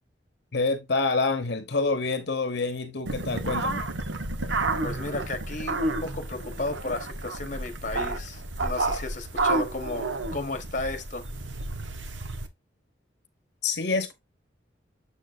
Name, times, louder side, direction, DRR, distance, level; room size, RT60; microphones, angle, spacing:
voice 1, 0.5-3.9 13.6-14.1, left 3 dB, 60° left, 0.9 m, -27 dB
sound 1, 3.1-12.5, right 2 dB, 75° right, 1.2 m, -31 dB
voice 2, 4.8-11.3, left 2 dB, 40° left, 1.1 m, -34 dB
7.2 x 6.5 x 2.6 m
head